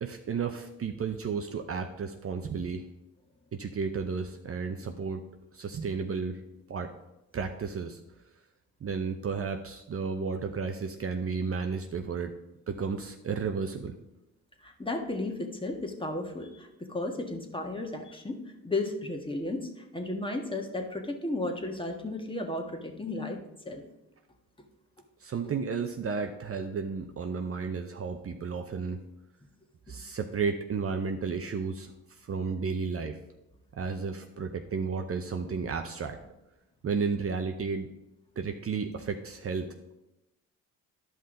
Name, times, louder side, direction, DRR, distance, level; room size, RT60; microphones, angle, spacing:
voice 1, 0.0-2.9 3.5-5.2 5.5-6.4 6.7-6.9 7.3-8.0 8.8-12.3 12.7-13.9 25.2-29.0 29.9-33.2 33.7-36.2 36.8-37.9 38.4-39.7, right 5 dB, 40° right, 5 dB, 0.7 m, -33 dB
voice 2, 14.6-23.4 23.6-23.8, left 2 dB, 15° left, 3 dB, 1.5 m, -34 dB
11.0 x 5.6 x 3.9 m, 0.93 s
supercardioid pair, 65°, 36 cm